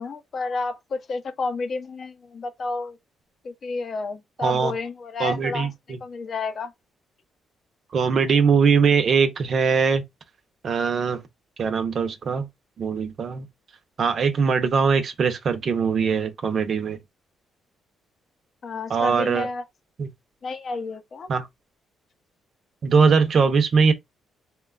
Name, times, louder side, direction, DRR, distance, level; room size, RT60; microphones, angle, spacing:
voice 1, 0.0-3.0 3.4-5.7 6.0-6.7 18.6-19.7 20.4-21.3, left 3 dB, 50° left, 0.5 m, -31 dB
voice 2, 5.2-5.7 7.9-10.0 10.6-11.2 11.6-12.5 12.8-13.5 14.0-17.0 18.9-19.5 20.0-20.1 21.3-21.5 22.8-23.9, right 5 dB, 55° right, 0.6 m, -21 dB
2.9 x 2.2 x 2.3 m
cardioid pair, 90°, 0 cm